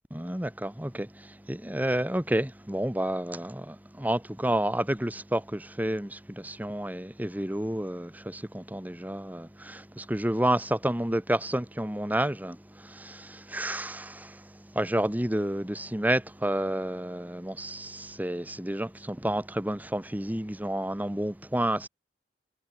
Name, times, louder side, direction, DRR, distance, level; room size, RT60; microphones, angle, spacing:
voice 1, 0.1-21.9, right 1 dB, 10° right, 1.4 m, -30 dB
head